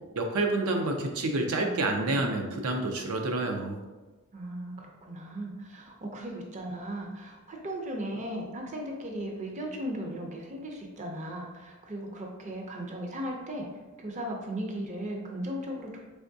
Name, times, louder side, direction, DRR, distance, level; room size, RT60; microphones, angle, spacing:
voice 1, 0.2-3.8, right 2 dB, 80° right, 3 dB, 0.6 m, -28 dB
voice 2, 1.2-2.2 4.3-13.7 14.0-16.0, right 1 dB, 35° right, 1 dB, 0.5 m, -37 dB
4.3 x 3.5 x 2.6 m, 1.2 s
head